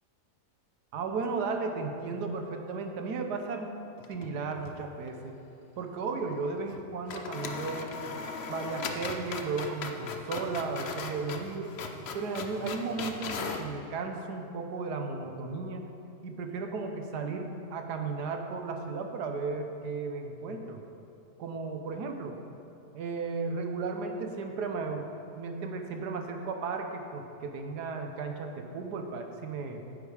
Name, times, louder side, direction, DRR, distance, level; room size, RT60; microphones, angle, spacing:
voice 1, 0.9-3.7 4.1-5.3 5.8-7.9 8.5-11.7 12.1-15.9 16.2-20.8 21.4-22.4 22.9-25.1 25.4-29.8, right 4 dB, 75° right, 4 dB, 1.4 m, -35 dB
sound 1, 4.0-4.8 5.1-5.2 6.7-6.8 7.1-13.7, left 4 dB, 60° left, 0.7 m, -38 dB
9.5 x 8.2 x 4.9 m, 2.7 s
omnidirectional pair, 1.8 m